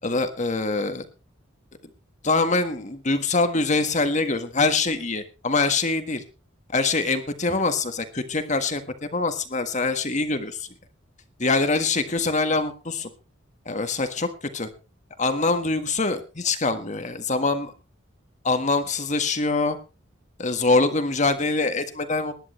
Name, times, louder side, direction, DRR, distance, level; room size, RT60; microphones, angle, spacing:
voice 1, 0.0-1.0 2.2-6.2 6.7-10.7 11.4-13.1 13.6-14.7 15.2-17.7 18.4-19.8 20.4-22.4, left 3 dB, 35° left, 8 dB, 1.6 m, -24 dB
20.0 x 11.0 x 3.2 m, 0.31 s
head